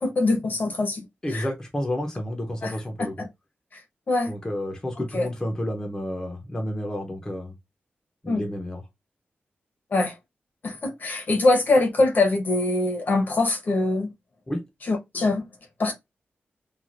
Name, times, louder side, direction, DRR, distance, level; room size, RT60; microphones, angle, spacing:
voice 1, 0.0-1.0 1.3-1.5 2.6-2.7 3.0-3.3 4.1-4.3 5.1-5.3 8.3-8.4 9.9-10.1 10.6-14.1 14.9-15.4 15.8-15.9, left 2 dB, 50° left, 1.0 m, -23 dB
voice 2, 1.2-3.1 4.3-7.5 8.2-8.8 14.5-14.6, left 1 dB, 15° left, 0.7 m, -30 dB
3.1 x 2.4 x 2.4 m
wide cardioid pair, 150°, 4 cm